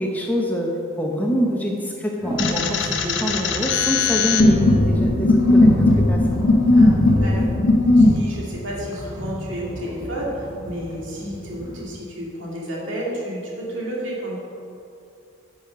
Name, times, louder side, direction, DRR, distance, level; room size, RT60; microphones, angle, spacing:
voice 1, 0.0-6.4, equal, 10° left, -1 dB, 0.8 m, -25 dB
sound 1, 2.2-11.8, equal, 20° right, 1.3 m, -33 dB
sound 2, 2.4-8.2, left 2 dB, 60° left, 0.7 m, -17 dB
voice 2, 6.7-7.5 8.0-14.4, equal, 65° right, -4 dB, 2.3 m, -31 dB
8.9 x 6.4 x 5.7 m, 2.6 s
head